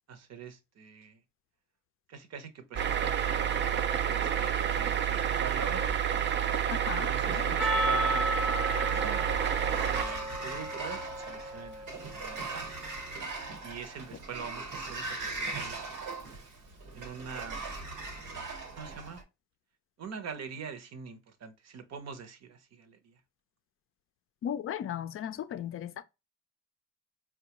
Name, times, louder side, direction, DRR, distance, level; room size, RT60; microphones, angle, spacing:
voice 1, 0.1-1.2 2.1-3.8 4.1-5.9 6.9-11.9 12.2-12.7 13.6-16.1 16.9-17.6 18.8-19.2 20.0-23.2, right 6 dB, 60° right, 0.8 m, -44 dB
sound 1, 2.8-10.0, right 9 dB, 40° right, 0.4 m, -29 dB
voice 2, 6.9-7.6 24.4-26.0, left 10 dB, 45° left, 0.4 m, -36 dB
Percussion, 7.6-12.2, equal, ahead, 0.7 m, -34 dB
Sliding door, 8.7-19.2, right 3 dB, 85° right, 1.2 m, -40 dB
4.4 x 2.3 x 2.9 m
cardioid pair, 90°, 30 cm